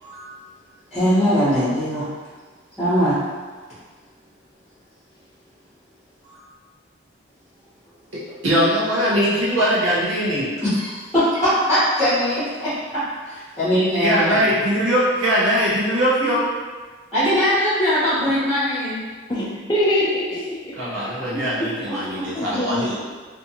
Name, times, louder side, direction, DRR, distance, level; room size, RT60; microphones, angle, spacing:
voice 1, 0.9-2.1 2.8-3.2 6.2-6.4 10.6-14.4 17.1-19.0 21.6-22.0, equal, ahead, -16 dB, 1.1 m, -21 dB
voice 2, 8.1-10.5 14.0-16.5 20.8-23.0, equal, 70° right, -7 dB, 0.9 m, -21 dB
voice 3, 19.3-20.9 21.8-23.0, left 1 dB, 20° left, -5 dB, 0.4 m, -25 dB
2.6 x 2.5 x 2.7 m, 1.4 s
head